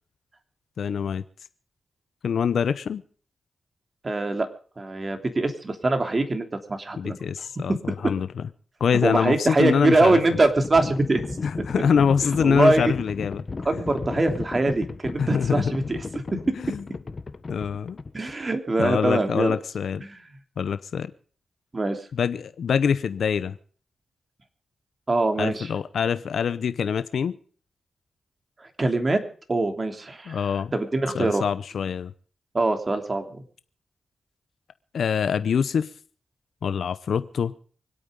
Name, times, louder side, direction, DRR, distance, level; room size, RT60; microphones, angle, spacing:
voice 1, 0.8-1.2 2.2-3.0 7.0-8.5 8.8-10.2 11.4-13.4 15.2-15.6 16.6-16.8 17.5-18.0 18.8-20.0 20.6-21.1 22.1-23.6 25.4-27.4 30.3-30.7 31.1-32.1 34.9-35.9 36.6-37.5, left 7 dB, 80° left, 13 dB, 0.7 m, -24 dB
voice 2, 4.0-4.5 4.8-7.5 9.0-11.4 12.4-12.9 13.6-16.0 18.1-19.6 20.0-20.2 21.7-22.0 25.1-25.7 28.6-29.2 29.5-31.4 32.5-33.4, right 2 dB, 40° right, 6 dB, 3.1 m, -23 dB
Livestock farm animals working animals, 9.4-18.5, left 4 dB, 45° left, 1.3 m, -35 dB
25.0 x 8.8 x 5.2 m, 0.43 s
cardioid pair, 65°, 0 cm